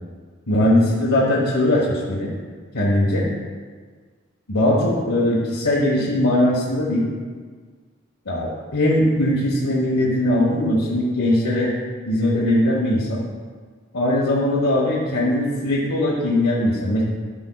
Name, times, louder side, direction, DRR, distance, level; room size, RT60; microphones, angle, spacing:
voice 1, 0.5-2.3 2.7-3.2 4.5-7.1 8.2-11.7 12.0-13.2 13.9-17.0, left 1 dB, 85° left, -6 dB, 1.2 m, -20 dB
12.5 x 5.1 x 2.3 m, 1.5 s
head